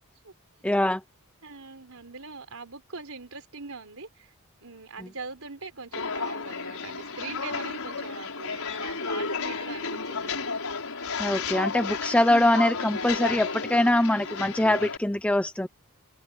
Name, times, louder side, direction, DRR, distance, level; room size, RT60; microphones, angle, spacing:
voice 1, 0.6-1.0 11.2-15.7, left 1 dB, 5° left, 0.6 m, -23 dB
voice 2, 1.4-4.3 4.6-10.4, right 4 dB, 75° right, 4.5 m, -42 dB
Walk footsteps, 5.9-15.0, left 4 dB, 75° left, 5.7 m, -32 dB
head